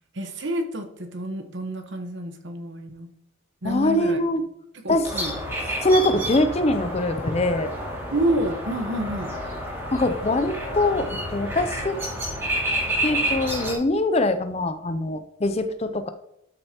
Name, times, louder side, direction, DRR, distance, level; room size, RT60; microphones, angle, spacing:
voice 1, 0.2-3.1 3.6-4.2 4.8-5.3 8.1-9.3, right 1 dB, 55° right, 6 dB, 1.1 m, -28 dB
voice 2, 3.6-4.4 4.9-5.1 5.8-7.7 9.9-12.0 13.0-16.1, left 1 dB, 30° left, 9 dB, 0.5 m, -23 dB
sound 1, 5.0-13.7, equal, 10° right, 2.6 m, -29 dB
12.5 x 6.5 x 2.9 m, 0.79 s
head